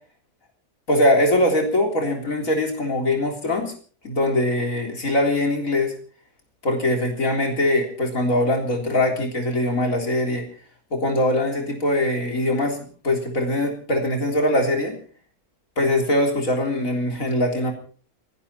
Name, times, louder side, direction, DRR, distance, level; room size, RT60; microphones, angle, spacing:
voice 1, 0.9-3.7 4.0-5.9 6.6-10.5 10.9-15.0 15.8-17.7, left 1 dB, 55° left, 3 dB, 4.0 m, -22 dB
28.5 x 11.5 x 4.4 m, 0.43 s
omnidirectional pair, 1.6 m